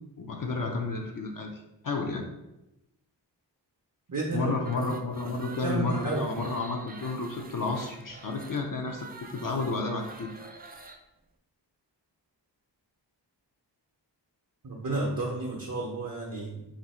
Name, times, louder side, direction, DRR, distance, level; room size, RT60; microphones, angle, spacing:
voice 1, 0.2-1.5 1.8-2.3 4.3-9.1 9.3-10.3, left 3 dB, 50° left, 1 dB, 0.5 m, -31 dB
voice 2, 4.1-4.9 5.2-6.4 14.6-16.7, right 2 dB, 45° right, -2 dB, 0.7 m, -32 dB
sound 1, 4.6-11.0, right 3 dB, 25° right, 0.3 m, -48 dB
2.7 x 2.5 x 4.2 m, 0.93 s
wide cardioid pair, 50°, 45 cm